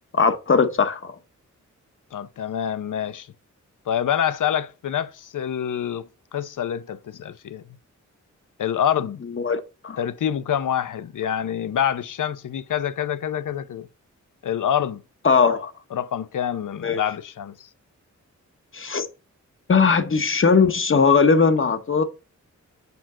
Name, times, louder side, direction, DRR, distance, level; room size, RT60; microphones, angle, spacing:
voice 1, 0.1-1.1 9.4-10.0 15.2-15.7 16.8-17.0 18.7-19.1 19.7-22.0, left 5 dB, 45° left, 1.1 m, -19 dB
voice 2, 2.1-3.3 3.9-7.6 8.6-9.2 10.0-13.9 14.4-15.0 15.9-17.7, left 9 dB, 85° left, 0.7 m, -26 dB
7.0 x 6.0 x 3.7 m
wide cardioid pair, 135°, 30 cm